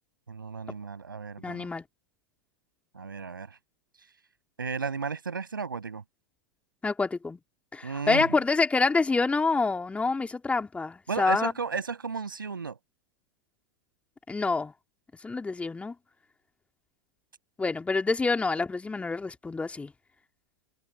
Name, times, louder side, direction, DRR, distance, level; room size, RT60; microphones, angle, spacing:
voice 1, 0.3-1.7 2.9-3.6 4.6-6.0 7.8-8.3 11.1-12.8, right 5 dB, 90° right, 6.7 m, -34 dB
voice 2, 1.4-1.8 6.8-7.4 7.7-11.5 14.3-14.7 15.2-15.9 17.6-19.9, left 3 dB, 10° left, 2.5 m, -27 dB
hypercardioid pair, 95°, 11 cm